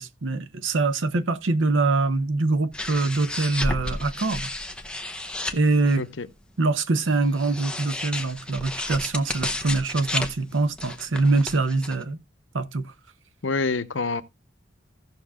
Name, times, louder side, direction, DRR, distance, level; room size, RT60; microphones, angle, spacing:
voice 1, 0.0-4.5 5.5-6.0 6.6-12.2 12.5-12.9, right 3 dB, 80° right, 0.8 m, -24 dB
sound 1, 2.7-6.1 7.1-12.0, left 1 dB, 5° left, 0.8 m, -32 dB
voice 2, 13.4-14.2, left 3 dB, 75° left, 0.8 m, -26 dB
16.0 x 6.5 x 2.4 m
head